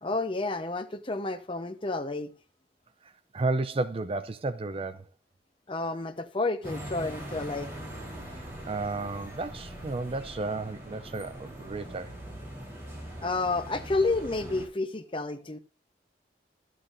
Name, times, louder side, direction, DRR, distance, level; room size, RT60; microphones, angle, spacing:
voice 1, 0.0-2.3 5.7-7.7 13.2-15.6, left 3 dB, 30° left, 0.9 m, -30 dB
voice 2, 3.3-5.0 8.3-12.1, right 3 dB, 30° right, 0.5 m, -32 dB
sound 1, 6.6-14.7, equal, 15° right, 3.8 m, -42 dB
12.0 x 7.6 x 2.6 m
head